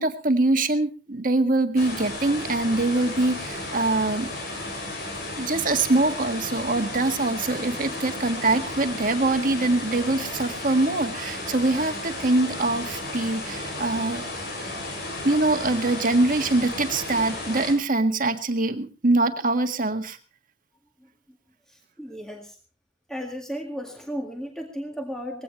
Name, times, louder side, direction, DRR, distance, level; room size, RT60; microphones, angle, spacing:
voice 1, 0.0-4.3 5.4-14.2 15.2-20.2, right 2 dB, 50° right, 7 dB, 1.7 m, -23 dB
sound 1, 1.8-17.7, left 2 dB, 65° left, 6.6 m, -34 dB
voice 2, 21.7-22.6 23.1-25.4, equal, 5° left, 2 dB, 2.0 m, -35 dB
20.5 x 17.0 x 3.2 m, 0.35 s
head